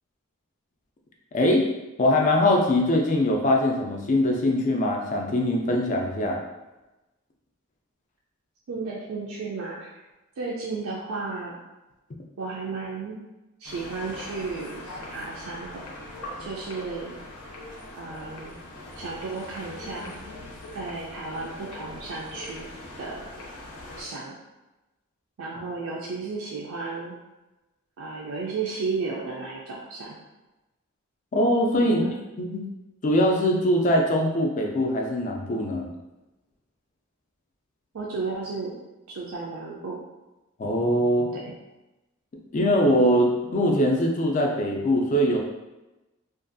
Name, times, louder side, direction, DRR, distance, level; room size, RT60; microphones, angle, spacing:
voice 1, 1.3-1.7 2.0-6.4 31.3-32.0 32.4-32.6 33.0-35.9 40.6-41.3 42.5-45.4, left 1 dB, 35° left, 1 dB, 0.3 m, -22 dB
voice 2, 8.7-9.9 10.4-11.6 12.4-13.2 13.6-14.8 15.1-16.1 16.4-17.2 17.9-18.6 19.0-20.1 20.7-22.7 23.0-23.3 24.0-24.3 25.4-27.1 28.0-30.2 31.8-32.1 37.9-38.7 39.1-40.0 41.3-41.5, right 4 dB, 70° right, -4 dB, 0.4 m, -33 dB
sound 1, 13.6-24.0, left 1 dB, 85° left, 0.6 m, -41 dB
2.5 x 2.3 x 2.5 m, 1.1 s
head